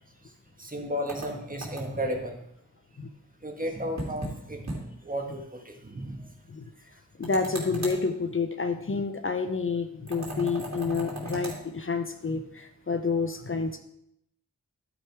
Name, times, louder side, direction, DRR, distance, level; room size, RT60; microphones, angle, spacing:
voice 1, 0.6-2.4 3.4-6.3, equal, 25° right, 2 dB, 1.6 m, -34 dB
sound 1, 1.1-2.1 4.0-4.4 4.7-4.8 5.1-5.2 7.2-8.0 10.1-11.6, right 1 dB, 60° right, 2.7 m, -36 dB
voice 2, 7.2-13.8, left 4 dB, 45° left, 8 dB, 0.7 m, -29 dB
11.5 x 5.1 x 4.7 m, 0.76 s
wide cardioid pair, 55°, 31 cm